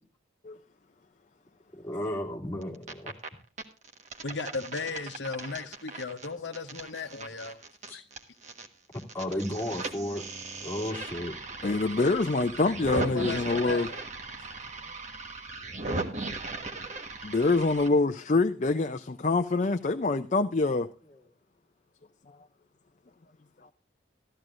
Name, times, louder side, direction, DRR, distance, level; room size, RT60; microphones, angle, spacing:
voice 1, 1.8-3.1 7.9-8.0 8.9-10.2 10.6-11.3 14.9-15.0, left 1 dB, 10° left, 2.7 m, -34 dB
sound 1, 2.6-3.3 3.6-8.7 8.9-17.9, right 3 dB, 40° right, 1.4 m, -38 dB
voice 2, 4.2-7.6 7.9-8.0 12.9-14.0, left 4 dB, 70° left, 0.9 m, -36 dB
voice 3, 11.6-13.9 17.2-20.9, left 3 dB, 40° left, 0.5 m, -25 dB
14.5 x 13.5 x 2.5 m
head